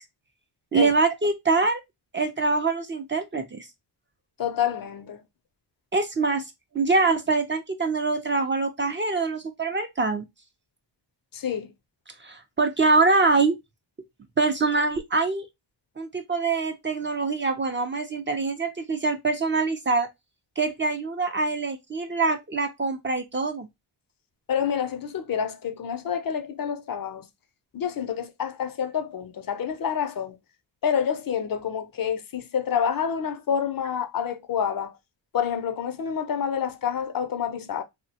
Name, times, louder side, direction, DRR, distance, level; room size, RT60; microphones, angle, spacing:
voice 1, 0.7-1.8 2.1-3.7 5.9-6.4 6.7-10.3 12.2-13.6 14.4-15.5 16.0-20.1 20.6-23.7, right 3 dB, 25° right, 0.5 m, -24 dB
voice 2, 4.4-5.2 11.3-11.7 24.5-27.2 27.7-30.4 30.8-34.9 35.3-37.8, left 8 dB, 50° left, 0.5 m, -28 dB
2.7 x 2.1 x 2.7 m
cardioid pair, 70°, 44 cm